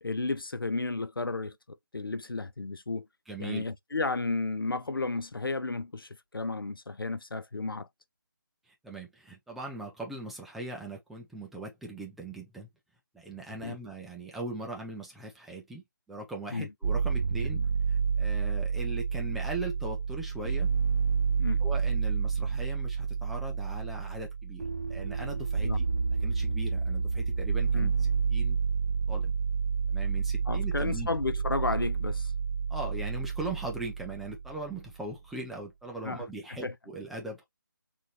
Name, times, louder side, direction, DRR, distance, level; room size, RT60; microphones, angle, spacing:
voice 1, 0.0-3.1 3.4-7.9 13.6-13.8 16.5-16.7 17.5-17.7 21.4-21.7 25.6-25.8 27.7-27.9 30.5-32.3 36.0-36.7, left 3 dB, 85° left, 0.9 m, -33 dB
voice 2, 3.3-3.6 8.7-12.7 13.1-17.6 17.9-20.7 21.6-25.8 26.2-27.9 28.3-28.6 29.1-29.3 29.9-31.1 32.7-37.4, right 2 dB, ahead, 0.4 m, -40 dB
sound 1, 16.8-34.8, right 5 dB, 55° right, 0.7 m, -29 dB
6.1 x 2.7 x 3.1 m
figure-of-eight pair, 160°, 11 cm